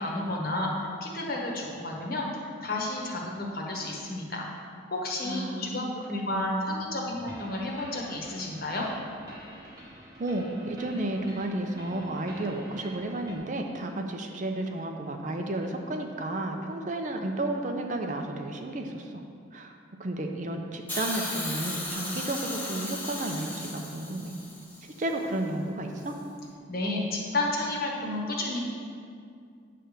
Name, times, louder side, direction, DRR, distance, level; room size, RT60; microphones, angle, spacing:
voice 1, 0.0-2.3 2.6-4.5 4.9-8.9 26.7-28.6, left 2 dB, 50° left, -2 dB, 1.2 m, -31 dB
voice 2, 5.2-6.9 9.5-9.7 10.2-19.2 19.5-19.7 20.0-24.3 24.8-26.2, right 1 dB, 40° right, 3 dB, 0.5 m, -32 dB
sound 1, 7.2-13.4, equal, 20° right, 1.0 m, -47 dB
Hiss, 20.9-25.0 26.0-26.1, left 1 dB, 10° left, 0.9 m, -36 dB
9.0 x 3.4 x 6.6 m, 2.3 s
head